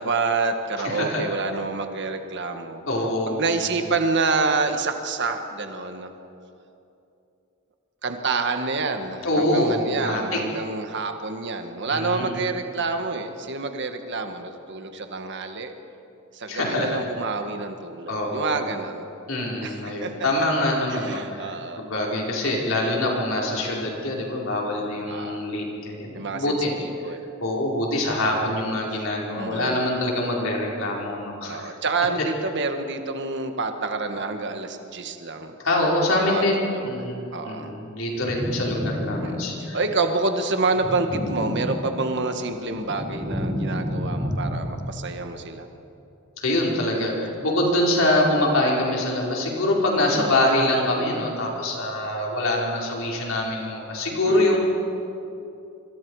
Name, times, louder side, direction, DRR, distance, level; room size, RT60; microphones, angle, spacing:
voice 1, 0.0-2.8 3.3-6.1 8.0-15.7 16.3-19.0 19.6-20.1 20.9-21.8 25.1-25.4 26.1-27.2 29.3-29.8 31.5-35.6 36.1-36.5 36.7-37.8 39.2-39.5 39.7-45.7 50.1-50.3 54.3-54.6, right 3 dB, 55° right, 6 dB, 1.6 m, -28 dB
voice 2, 0.8-1.2 2.9-3.6 9.2-10.4 11.9-12.3 16.5-17.1 18.1-18.6 19.3-26.7 27.1-31.6 35.6-39.8 46.4-54.6, left 1 dB, 65° left, -2 dB, 4.9 m, -24 dB
sound 1, 38.2-39.7 40.7-42.2 42.6-45.0, equal, 10° right, 3.8 m, -30 dB
26.0 x 25.0 x 4.9 m, 2.7 s
head